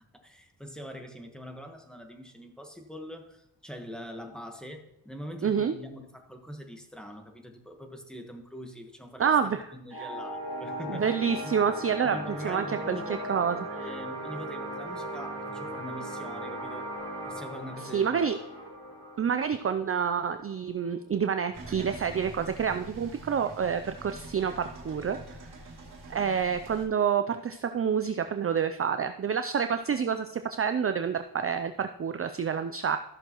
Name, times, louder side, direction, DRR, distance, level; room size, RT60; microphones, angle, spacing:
voice 1, 0.1-11.1 11.4-11.5 12.0-13.2 13.5-16.9 17.2-18.3, equal, ahead, 4 dB, 1.3 m, -43 dB
voice 2, 5.4-5.7 9.2-9.6 9.9-10.1 10.9-13.6 17.8-18.4 19.2-25.2 26.1-33.0, right 7 dB, 35° right, 9 dB, 0.4 m, -28 dB
sound 1, 9.9-21.0, right 1 dB, 55° left, 3.4 m, -38 dB
sound 2, 21.5-26.9, right 2 dB, 65° right, 2.5 m, -45 dB
14.0 x 6.6 x 3.0 m, 0.82 s
cardioid pair, 80°, 43 cm